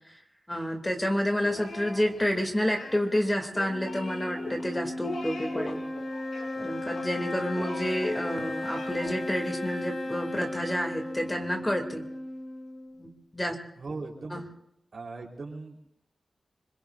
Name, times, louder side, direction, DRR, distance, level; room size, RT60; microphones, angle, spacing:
voice 1, 0.5-5.8 6.6-12.0 13.0-13.6 14.3-14.4, equal, 15° left, 4 dB, 2.3 m, -29 dB
sound 1, 1.4-9.2, left 2 dB, 80° left, 4.3 m, -40 dB
sound 2, 3.7-13.1, left 1 dB, 45° left, 7.1 m, -36 dB
voice 2, 13.8-14.4 14.9-16.0, right 3 dB, 65° right, -1 dB, 3.6 m, -39 dB
25.5 x 22.0 x 2.5 m, 0.79 s
cardioid pair, 50°, 0 cm